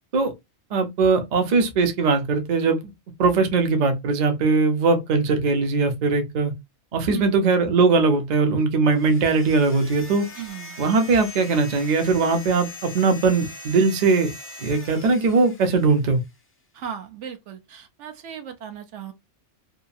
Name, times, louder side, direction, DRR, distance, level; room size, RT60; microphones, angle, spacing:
voice 1, 0.7-2.8 3.2-6.5 6.9-10.3 10.8-14.3 14.6-16.2, right 4 dB, 45° right, 0.6 m, -20 dB
voice 2, 7.1-7.4 10.3-10.8 16.7-19.1, right 8 dB, 80° right, 1.0 m, -36 dB
sound 1, 8.9-16.3, left 2 dB, 20° left, 0.3 m, -41 dB
2.8 x 2.3 x 2.5 m
omnidirectional pair, 1.2 m